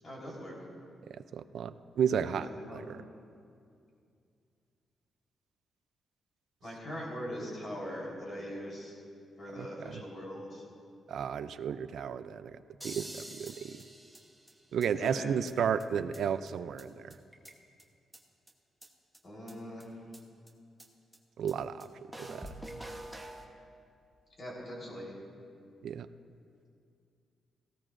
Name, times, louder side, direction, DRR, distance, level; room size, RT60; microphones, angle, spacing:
voice 1, 0.0-0.6 2.2-2.8 6.6-8.9 9.4-10.6 15.0-15.3 15.9-16.0 19.2-20.0 24.4-25.1, equal, 35° left, -4 dB, 3.7 m, -41 dB
voice 2, 1.3-3.0 9.6-10.0 11.1-12.6 12.8-13.1 13.4-13.7 14.7-17.1 21.4-21.9 22.2-22.4 25.8-26.1, right 7 dB, 65° right, 12 dB, 0.4 m, -33 dB
sound 1, 12.8-14.9 15.1-15.2 15.5-15.6 15.8-15.9 16.1-16.2 16.5-16.6 16.8-16.9 17.1-17.8 18.1-18.2 18.5-18.6 18.8-18.9 19.1-19.2 19.5-19.6 19.8-19.9 20.1-20.2 20.5-20.6 20.8-20.9 21.1-21.2 21.5-21.6 21.8-21.9 22.1-23.5, right 1 dB, 5° right, 1.0 m, -46 dB
18.0 x 16.0 x 2.6 m, 2.4 s
wide cardioid pair, 155°, 0 cm